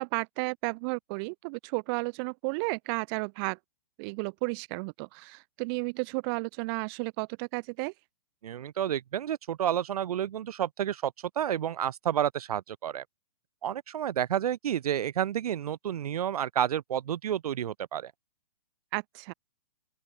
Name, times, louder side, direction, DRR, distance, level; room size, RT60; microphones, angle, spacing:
voice 1, 0.0-3.6 4.0-7.9 18.9-19.3, right 33 dB, 35° right, 1.5 m, -33 dB
voice 2, 8.4-13.0 13.6-18.1, right 10 dB, 65° right, 1.5 m, -30 dB
open air
hypercardioid pair, 135°, 21 cm